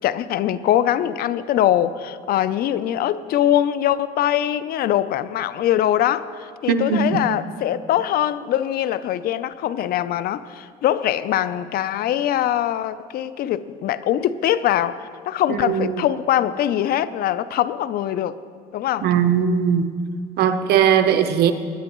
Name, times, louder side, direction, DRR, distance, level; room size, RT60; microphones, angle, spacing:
voice 1, 0.0-18.4 18.7-19.1, left 11 dB, 65° left, 15 dB, 0.5 m, -22 dB
voice 2, 6.7-7.2 15.7-15.9 19.0-19.9 20.4-21.5, right 8 dB, 70° right, 9 dB, 0.8 m, -19 dB
19.0 x 10.5 x 3.0 m, 2.1 s
cardioid pair, 110°, 17 cm